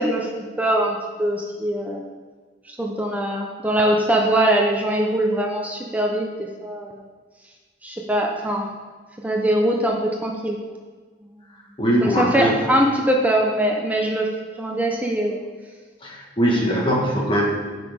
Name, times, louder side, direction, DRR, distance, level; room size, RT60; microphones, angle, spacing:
voice 1, 0.0-2.0 2.7-7.0 7.8-8.7 9.2-10.6 12.0-14.3 14.6-15.4 16.5-16.7, right 1 dB, 10° right, 0 dB, 0.9 m, -22 dB
voice 2, 11.8-12.6 16.0-17.5, equal, 25° left, -2 dB, 1.7 m, -21 dB
15.0 x 6.1 x 3.7 m, 1.5 s
head